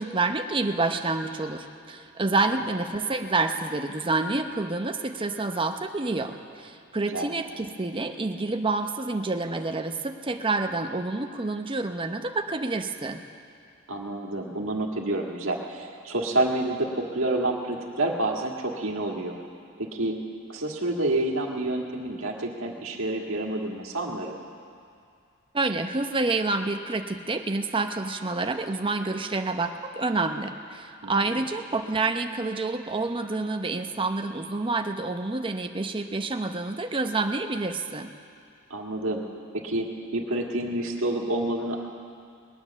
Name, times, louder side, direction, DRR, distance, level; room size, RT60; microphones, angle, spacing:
voice 1, 0.0-13.2 25.5-38.1, right 3 dB, 25° right, 6 dB, 0.7 m, -28 dB
voice 2, 13.9-19.4 19.8-20.2 20.5-24.3 31.0-31.4 38.7-39.2 39.5-41.8, right 1 dB, 70° right, 0 dB, 1.8 m, -28 dB
20.5 x 9.6 x 6.9 m, 2.3 s
head